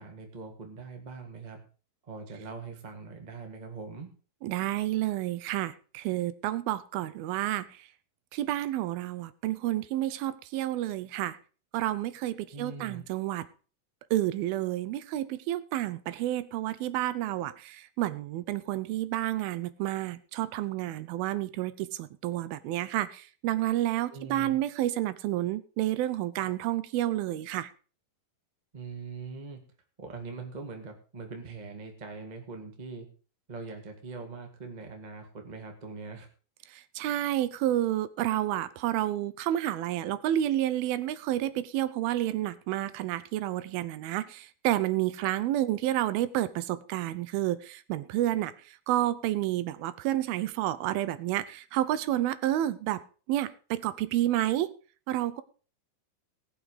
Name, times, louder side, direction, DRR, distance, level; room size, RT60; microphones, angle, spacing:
voice 1, 0.0-1.6 2.1-4.1 12.5-13.0 24.1-24.6 28.7-29.6 30.0-33.1 33.5-36.3, right 4 dB, 30° right, 3 dB, 0.7 m, -42 dB
voice 2, 4.4-7.7 8.3-11.4 11.7-13.4 14.1-27.7 37.0-48.5 48.9-53.0 53.3-54.7 55.1-55.4, right 13 dB, 85° right, 15 dB, 2.6 m, -30 dB
18.5 x 6.5 x 4.9 m, 0.37 s
omnidirectional pair, 4.3 m